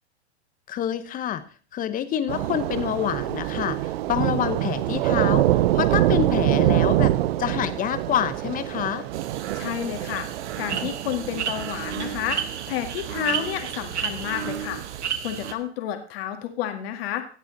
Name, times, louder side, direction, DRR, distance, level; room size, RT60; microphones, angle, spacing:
voice 1, 0.7-1.4 1.7-3.8 4.1-9.0, left 10 dB, 25° left, 13 dB, 1.1 m, -27 dB
Thunder / Rain, 2.3-15.1, right 14 dB, 65° right, 0.7 m, -26 dB
sound 1, 9.1-15.5, right 8 dB, 90° right, 1.6 m, -32 dB
voice 2, 9.5-10.3 10.6-12.4 12.7-14.8 15.2-17.3, left 11 dB, 60° left, 7 dB, 2.1 m, -30 dB
15.5 x 9.0 x 4.1 m, 0.41 s
hypercardioid pair, 130°, 34 cm